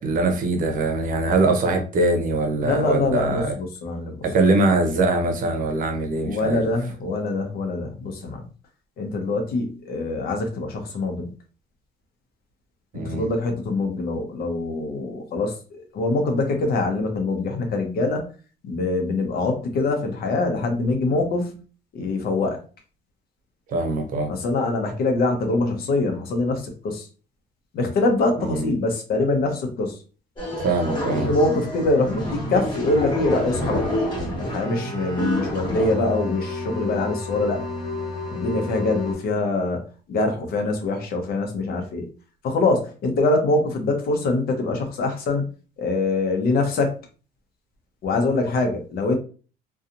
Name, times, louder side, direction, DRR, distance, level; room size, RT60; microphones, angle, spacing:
voice 1, 0.0-3.5 4.2-6.7 12.9-13.3 23.7-24.3 28.4-28.7 30.6-31.3, right 2 dB, 55° right, 4 dB, 0.7 m, -22 dB
voice 2, 2.6-4.2 4.4-4.5 6.2-8.5 9.0-11.3 12.9-18.2 18.6-21.6 21.9-22.6 24.3-27.1 27.7-30.0 31.1-33.9 34.4-37.6 38.3-42.1 42.4-45.5 45.8-47.0 48.0-49.2, left 2 dB, 65° left, 4 dB, 0.8 m, -24 dB
sound 1, 30.4-39.1, left 1 dB, 25° left, 1.4 m, -28 dB
2.7 x 2.3 x 2.5 m, 0.37 s
cardioid pair, 110°, 17 cm